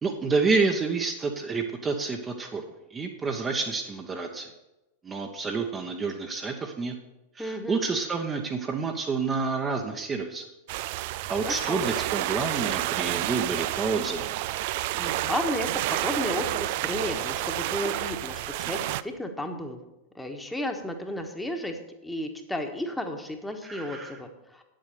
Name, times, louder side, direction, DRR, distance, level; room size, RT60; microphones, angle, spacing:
voice 1, 0.0-2.6 2.9-4.5 5.0-7.0 7.3-10.4 11.3-14.3 23.6-24.2, right 4 dB, 20° right, 2 dB, 1.0 m, -29 dB
voice 2, 7.4-7.8 11.4-11.9 15.0-19.8 20.1-24.6, left 1 dB, 5° left, 5 dB, 1.4 m, -33 dB
sound 1, 10.7-19.0, right 15 dB, 50° right, 0.4 m, -30 dB
9.5 x 7.6 x 6.8 m, 0.98 s
figure-of-eight pair, 90°, 0 cm